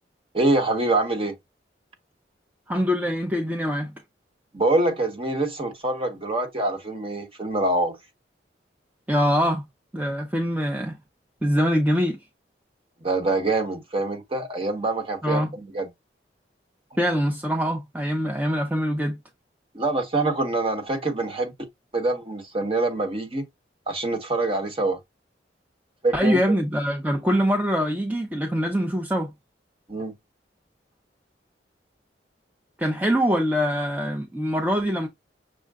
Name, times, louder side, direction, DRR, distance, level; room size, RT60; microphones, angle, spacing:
voice 1, 0.3-1.3 4.5-8.0 13.0-15.9 19.7-21.5 21.9-23.5 23.9-25.0 26.0-26.4 29.9-30.1, right 2 dB, 30° right, 1.1 m, -25 dB
voice 2, 2.7-3.9 9.1-9.6 9.9-11.0 11.4-12.2 15.2-15.5 17.0-19.2 26.1-29.3 32.8-35.1, equal, 10° right, 0.6 m, -23 dB
6.4 x 2.2 x 3.5 m
head